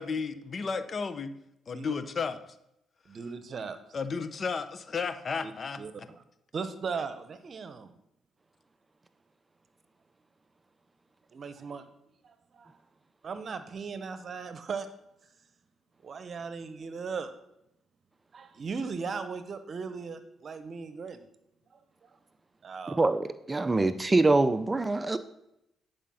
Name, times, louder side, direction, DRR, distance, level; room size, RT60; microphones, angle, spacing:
voice 1, 0.0-1.3 1.7-2.6 3.9-6.1, left 5 dB, 45° left, 11 dB, 0.8 m, -33 dB
voice 2, 3.1-3.8 5.4-5.5 5.8-5.9 6.5-7.9 11.3-11.9 12.2-12.8 13.2-14.9 16.0-17.3 18.3-21.2 22.6-23.0, right 5 dB, 50° right, 11 dB, 0.9 m, -37 dB
voice 3, 22.9-25.2, right 2 dB, 25° right, 12 dB, 0.6 m, -25 dB
10.0 x 5.1 x 5.6 m, 0.84 s
supercardioid pair, 65°, 0 cm